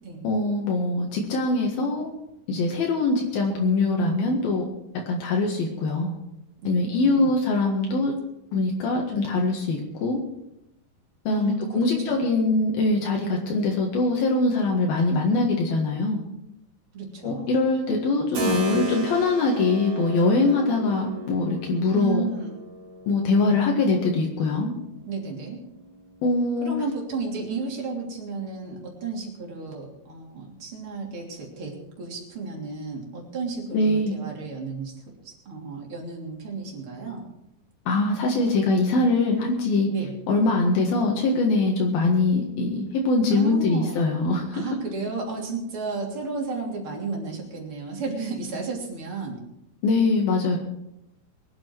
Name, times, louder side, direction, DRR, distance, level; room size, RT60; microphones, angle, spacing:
voice 1, 0.2-2.1 2.5-4.6 5.1-6.1 6.7-8.1 8.5-10.2 11.3-16.2 17.2-22.3 23.1-24.7 26.2-26.7 33.7-34.2 37.9-39.9 40.3-44.7 49.8-50.6, left 3 dB, 75° left, 0 dB, 3.5 m, -23 dB
voice 2, 6.6-7.3 11.3-12.3 16.9-17.6 21.9-22.6 25.1-25.6 26.6-34.9 35.2-37.2 39.9-40.1 43.3-44.0 44.5-49.4, right 4 dB, 35° right, -1 dB, 3.7 m, -33 dB
Keyboard (musical), 18.3-26.9, right 1 dB, 60° right, 4.0 m, -35 dB
23.0 x 9.0 x 4.7 m, 0.85 s
omnidirectional pair, 4.4 m